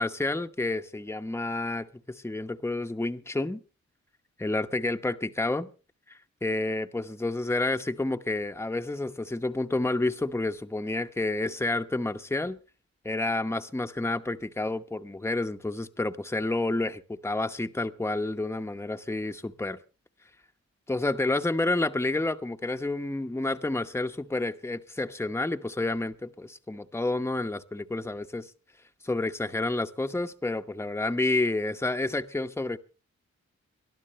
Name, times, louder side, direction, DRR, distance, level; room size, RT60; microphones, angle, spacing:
voice 1, 0.0-3.6 4.4-5.7 6.4-12.6 13.0-19.8 20.9-28.5 29.0-32.8, left 2 dB, 10° left, 0.9 m, -29 dB
23.0 x 12.0 x 3.2 m
cardioid pair, 60°, 30 cm